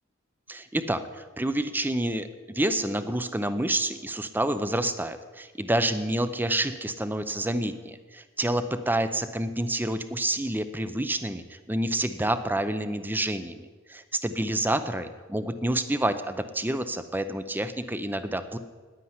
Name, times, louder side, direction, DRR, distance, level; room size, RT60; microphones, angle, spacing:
voice 1, 0.5-18.6, right 1 dB, 10° right, 11 dB, 0.7 m, -28 dB
9.9 x 9.8 x 9.6 m, 1.4 s
head